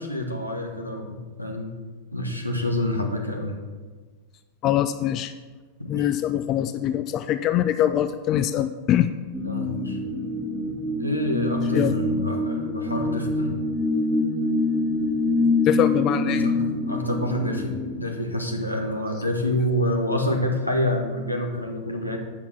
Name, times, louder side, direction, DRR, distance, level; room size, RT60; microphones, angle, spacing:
voice 1, 0.0-1.7 2.1-3.6 5.8-6.1 9.4-10.0 11.0-13.5 16.4-16.6 16.9-22.2, left 1 dB, 90° left, 1 dB, 1.3 m, -27 dB
voice 2, 4.6-5.3 5.9-9.1 11.7-11.9 15.6-16.5, left 11 dB, 35° left, 11 dB, 0.4 m, -23 dB
sound 1, 9.3-17.9, left 2 dB, 5° right, 1.1 m, -25 dB
8.5 x 6.1 x 5.8 m, 1.4 s
figure-of-eight pair, 90°, 0 cm